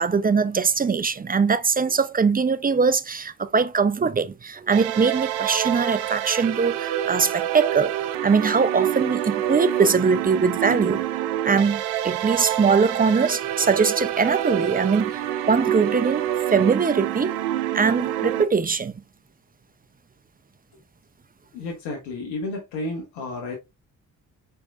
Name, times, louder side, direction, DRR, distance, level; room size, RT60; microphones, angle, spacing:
voice 1, 0.0-8.0 8.2-11.0 11.4-15.2 15.5-17.4 17.7-18.9, right 5 dB, 20° right, 0.6 m, -21 dB
sound 1, 4.7-18.4, right 12 dB, 85° right, 0.6 m, -27 dB
voice 2, 21.5-23.5, left 2 dB, 85° left, 1.1 m, -31 dB
4.6 x 4.5 x 2.4 m
hypercardioid pair, 45°, 40 cm